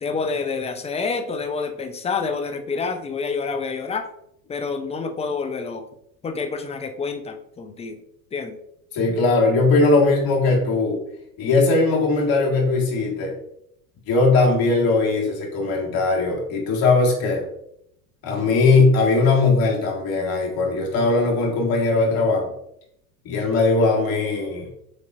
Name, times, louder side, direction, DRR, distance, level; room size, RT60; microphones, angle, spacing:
voice 1, 0.0-4.1 4.5-5.8 6.2-8.0 8.3-8.6, left 4 dB, 15° left, 7 dB, 0.5 m, -28 dB
voice 2, 8.9-11.0 11.4-13.3 14.1-17.4 18.2-22.5 23.3-24.7, left 3 dB, 50° left, -1 dB, 1.8 m, -19 dB
7.1 x 2.9 x 2.5 m, 0.75 s
hypercardioid pair, 90°, 46 cm